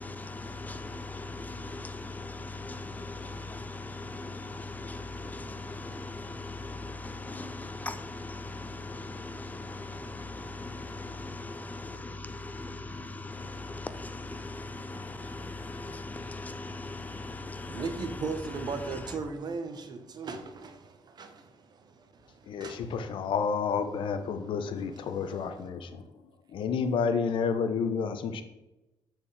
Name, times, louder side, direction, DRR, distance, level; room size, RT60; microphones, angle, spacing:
voice 1, 0.0-17.9, left 2 dB, 20° left, 0.6 m, -39 dB
voice 2, 11.8-13.2 17.6-23.4 23.8-25.7, right 4 dB, 50° right, 0.8 m, -40 dB
voice 3, 22.5-25.8 26.5-28.4, left 6 dB, 70° left, 0.6 m, -30 dB
7.2 x 4.4 x 3.3 m
cardioid pair, 85°, 9 cm